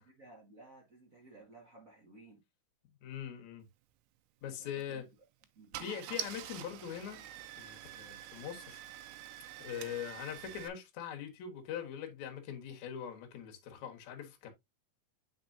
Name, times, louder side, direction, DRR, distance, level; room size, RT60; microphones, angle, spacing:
voice 1, 0.0-2.4 4.5-5.1 5.5-6.0, right 2 dB, 50° right, 0.9 m, -56 dB
voice 2, 3.0-3.6 4.4-5.0 5.8-7.2 7.6-8.8 9.6-14.5, left 9 dB, 60° left, 2.3 m, -42 dB
Car / Engine starting, 4.6-4.8 5.4-5.5 5.7-10.7, right 12 dB, 85° right, 2.7 m, -46 dB
7.8 x 5.5 x 2.6 m
omnidirectional pair, 4.7 m